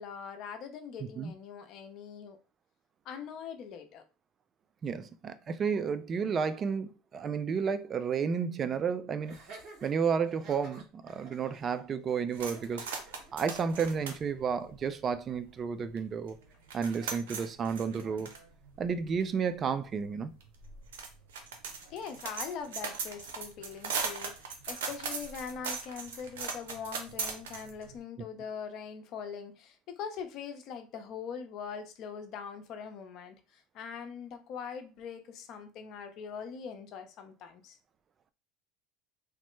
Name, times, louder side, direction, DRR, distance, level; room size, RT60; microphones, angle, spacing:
voice 1, 0.0-2.4 3.0-4.0 21.9-24.3 24.7-37.8, left 6 dB, 55° left, 0.6 m, -42 dB
voice 2, 4.8-9.4 9.8-12.9 13.3-16.4 16.7-18.3 18.8-20.3, right 6 dB, 35° right, 0.3 m, -32 dB
Laughter, 9.2-14.2, right 3 dB, 60° right, 1.5 m, -52 dB
sound 1, 12.3-15.5 16.0-16.1 16.3-28.0, right 5 dB, 90° right, 0.6 m, -39 dB
3.1 x 2.0 x 3.1 m
supercardioid pair, 105°, 0 cm